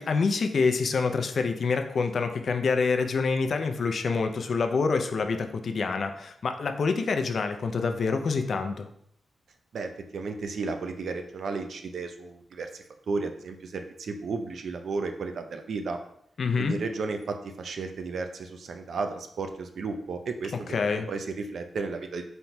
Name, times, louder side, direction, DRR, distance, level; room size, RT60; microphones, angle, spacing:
voice 1, 0.0-8.9 16.4-16.8 20.7-21.1, left 4 dB, 65° left, 6 dB, 0.4 m, -26 dB
voice 2, 9.7-16.0 16.6-22.2, right 4 dB, 75° right, 6 dB, 0.4 m, -33 dB
4.4 x 3.9 x 2.2 m, 0.70 s
cardioid pair, 85°, 0 cm